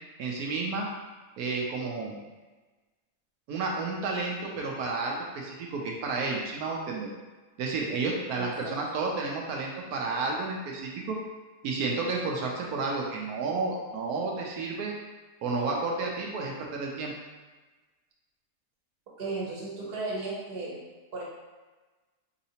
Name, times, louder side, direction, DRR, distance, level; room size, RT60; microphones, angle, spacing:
voice 1, 0.2-0.9 1.4-2.2 3.5-7.1 7.6-11.2 11.6-14.9 15.4-17.1, right 3 dB, 90° right, -1 dB, 1.1 m, -31 dB
voice 2, 8.4-8.8 19.2-20.8 21.1-21.2, right 3 dB, 45° right, -5 dB, 1.1 m, -35 dB
4.0 x 2.8 x 2.8 m, 1.3 s
omnidirectional pair, 1.5 m